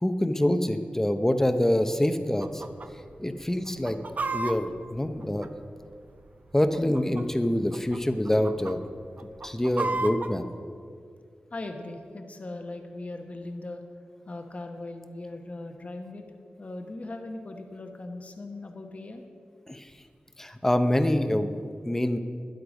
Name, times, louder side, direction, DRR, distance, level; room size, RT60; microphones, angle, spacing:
voice 1, 0.0-2.6 3.2-4.0 4.3-5.5 6.5-8.8 9.4-10.4 19.7-19.9 20.4-21.6 21.8-22.2, left 1 dB, 10° left, 9 dB, 0.7 m, -25 dB
Chicken rooster, 2.4-2.9 3.1-3.2 3.7-5.9 6.7-7.4 7.7-8.0 8.3-8.7 9.2-10.3, right 3 dB, 50° right, 0.6 m, -32 dB
voice 2, 11.5-13.8 14.3-16.2 16.6-19.2, left 2 dB, 40° left, 5 dB, 1.0 m, -39 dB
13.0 x 10.5 x 5.2 m, 2.2 s
wide cardioid pair, 95°, 3 cm